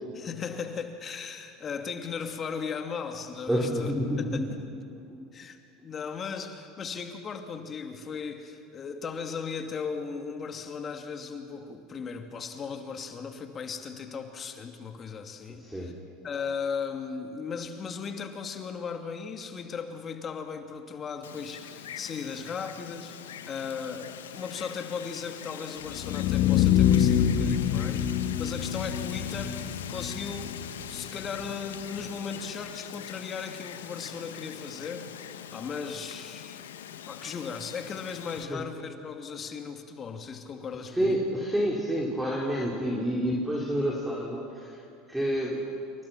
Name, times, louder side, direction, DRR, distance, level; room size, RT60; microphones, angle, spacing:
voice 1, 0.2-3.9 4.2-4.5 5.3-15.9 16.2-36.6 37.1-41.2, left 6 dB, 35° left, 5 dB, 2.6 m, -37 dB
voice 2, 3.5-4.5 5.1-5.2 15.5-15.9 38.5-38.6 40.9-44.8 45.1-45.6, equal, 5° right, -4 dB, 4.6 m, -28 dB
Wind, 21.2-38.4, left 9 dB, 85° left, 1.4 m, -42 dB
sound 1, 25.9-31.9, left 10 dB, 60° left, 2.0 m, -26 dB
29.0 x 28.0 x 6.0 m, 2.5 s
hypercardioid pair, 80°, 0 cm